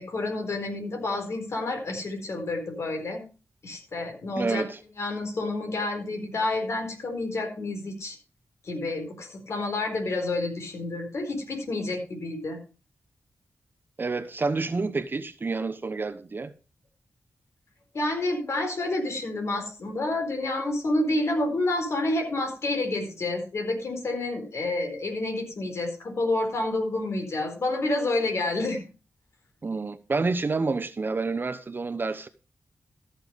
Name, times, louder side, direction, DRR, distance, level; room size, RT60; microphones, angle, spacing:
voice 1, 0.0-3.2 3.6-4.6 5.0-8.2 8.6-12.6 17.9-28.8, left 2 dB, 60° left, 4.4 m, -29 dB
voice 2, 4.4-4.8 14.0-16.5 29.6-32.3, right 3 dB, 40° right, 0.9 m, -28 dB
14.5 x 6.9 x 5.2 m
wide cardioid pair, 90°, 5 cm